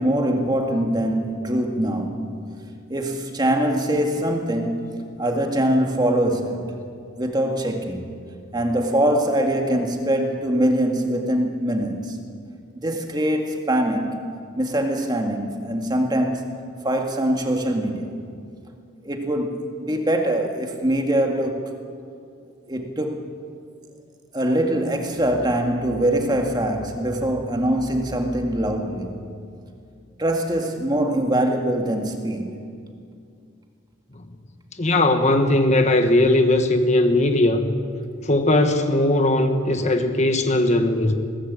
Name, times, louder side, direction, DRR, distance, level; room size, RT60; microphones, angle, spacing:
voice 1, 0.0-2.5 2.9-6.8 7.2-8.1 8.5-12.2 12.8-14.2 14.6-16.5 16.8-18.1 19.0-21.8 22.7-23.3 24.3-29.2 30.2-32.6, right 1 dB, 20° right, 3 dB, 2.1 m, -23 dB
voice 2, 34.8-37.7 38.2-41.1, left 1 dB, 35° left, 6 dB, 1.3 m, -19 dB
22.0 x 18.0 x 8.6 m, 2.3 s
head